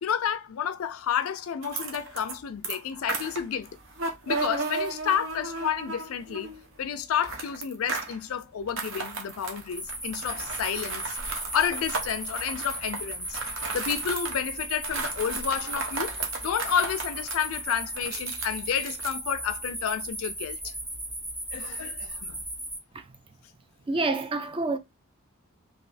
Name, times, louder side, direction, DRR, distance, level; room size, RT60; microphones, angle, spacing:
voice 1, 0.0-3.8 4.3-6.5 6.8-20.7 21.5-22.4, left 8 dB, 70° left, 0.4 m, -30 dB
sound 1, 1.6-2.4 2.6-6.6 7.2-8.2 8.7-14.4 14.8-19.1, right 4 dB, 60° right, 0.7 m, -35 dB
sound 2, 9.7-22.8, right 1 dB, 10° right, 0.9 m, -36 dB
voice 2, 23.9-24.8, right 3 dB, 25° right, 0.3 m, -27 dB
3.3 x 2.5 x 2.5 m
head